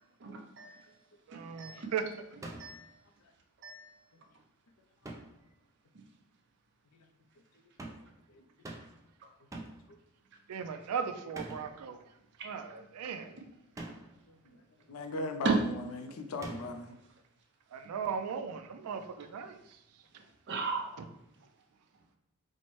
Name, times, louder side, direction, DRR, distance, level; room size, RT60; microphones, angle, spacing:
voice 1, 0.2-0.8 1.6-1.9 2.6-2.9 3.6-3.9 15.4-15.6 20.5-20.9, right 4 dB, 55° right, 1 dB, 0.6 m, -33 dB
voice 2, 1.3-2.0 10.5-12.0 12.4-13.3 17.7-19.6 21.0-21.1, right 6 dB, 90° right, 8 dB, 0.4 m, -37 dB
sound 1, 2.4-2.9 5.0-5.5 7.8-8.2 8.6-9.1 9.5-9.9 11.3-11.8 13.8-14.2 16.4-16.9, right 2 dB, 15° right, 0.3 m, -45 dB
voice 3, 14.3-14.6 14.9-17.0, left 2 dB, 70° left, 6 dB, 0.4 m, -39 dB
4.2 x 2.1 x 3.0 m, 0.83 s
head